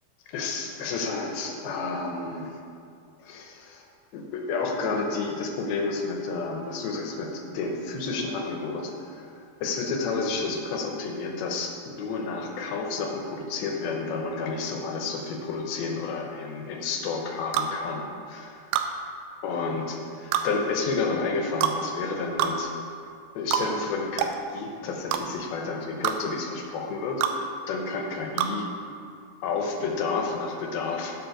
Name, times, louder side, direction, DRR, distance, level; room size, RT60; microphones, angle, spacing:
voice 1, 0.3-2.6 3.2-3.9 4.1-18.6 19.4-22.7 23.4-28.7 29.4-31.1, left 4 dB, 85° left, 2 dB, 3.0 m, -31 dB
sound 1, 17.5-17.7 18.7-18.9 20.3-20.5 21.6-21.8 22.4-22.6 23.5-23.7 24.2-24.4 25.1-25.2 26.0-26.2 27.2-27.4 28.4-28.5, right 10 dB, 80° right, 2.3 m, -25 dB
7.6 x 7.5 x 6.5 m, 2.4 s
omnidirectional pair, 4.2 m